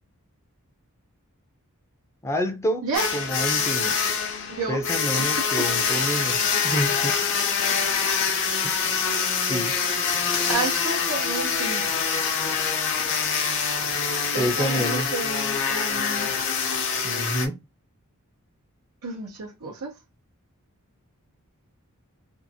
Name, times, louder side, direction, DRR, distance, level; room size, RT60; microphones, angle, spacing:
voice 1, 2.2-2.9 3.1-4.0 4.7-7.2 8.6-9.0 9.5-9.8 14.3-15.1 17.0-17.6, equal, 15° left, 0.5 m, -28 dB
sound 1, 2.9-17.5, left 6 dB, 55° left, 0.7 m, -25 dB
voice 2, 4.5-4.8 5.1-5.7 8.0-8.2 10.5-11.9 14.3-16.3 19.0-19.9, right 3 dB, 85° right, 0.8 m, -31 dB
2.7 x 2.5 x 2.7 m
head